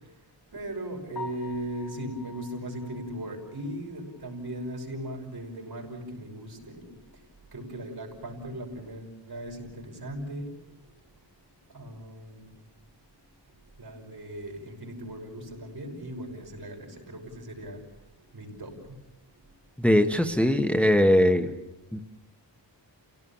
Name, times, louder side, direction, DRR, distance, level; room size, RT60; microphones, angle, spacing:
voice 1, 0.5-7.1 7.5-10.5 11.7-12.5 13.8-17.9 18.2-19.0, right 1 dB, 55° right, 1 dB, 5.9 m, -38 dB
Piano, 1.1-5.1 5.5-5.6 6.1-6.2 6.5-6.6 9.7-9.8 18.3-18.5, left 4 dB, 65° left, 5.0 m, -47 dB
voice 2, 19.8-21.5 21.9-22.0, left 1 dB, 5° left, 5 dB, 1.1 m, -21 dB
29.5 x 17.5 x 7.1 m, 0.98 s
wide cardioid pair, 140°, 44 cm